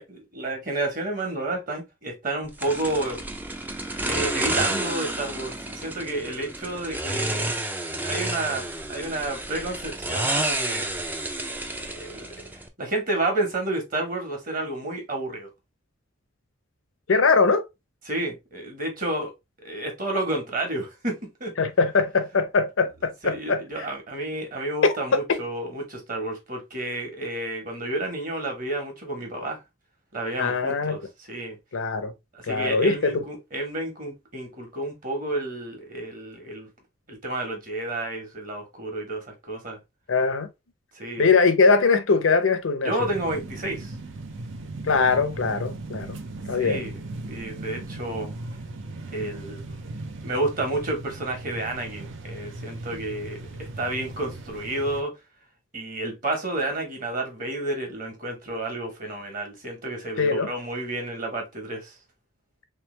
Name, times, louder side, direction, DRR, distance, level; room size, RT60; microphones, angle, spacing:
voice 1, 0.0-3.2 4.1-7.5 8.0-10.9 11.7-12.3 12.8-15.5 18.0-19.3 19.6-21.5 23.2-29.6 30.1-31.0 31.3-31.6 32.3-36.7 37.1-39.8 40.9-41.3 42.8-43.9 46.6-48.4 49.1-49.6 50.2-55.1 55.7-61.9, right 2 dB, 40° right, 1.4 m, -30 dB
sound 1, 2.6-12.7, right 1 dB, 10° right, 0.4 m, -30 dB
voice 2, 17.1-17.6 21.6-23.9 24.8-25.2 30.4-31.0 31.7-32.1 32.5-33.2 40.1-40.5 41.2-42.9 44.8-46.2 46.5-46.9 60.2-60.5, left 4 dB, 75° left, 0.7 m, -21 dB
sound 2, 43.0-55.0, right 2 dB, 70° right, 0.6 m, -37 dB
3.4 x 3.2 x 3.2 m
head